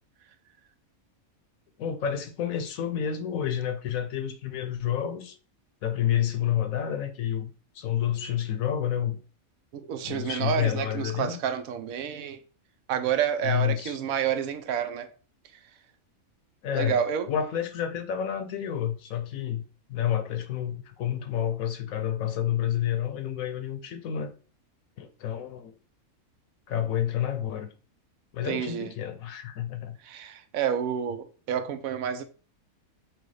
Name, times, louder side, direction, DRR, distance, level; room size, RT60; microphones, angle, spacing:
voice 1, 1.8-5.4 5.8-9.2 10.0-11.4 13.4-14.0 16.6-17.0 17.3-24.3 25.0-25.7 26.7-27.7 28.3-30.0, left 10 dB, 75° left, 1.0 m, -29 dB
voice 2, 9.7-12.4 12.9-15.1 15.5-15.6 16.7-17.3 28.4-28.9 30.0-32.2, right 8 dB, 80° right, 1.0 m, -29 dB
6.1 x 2.3 x 3.1 m
omnidirectional pair, 1.5 m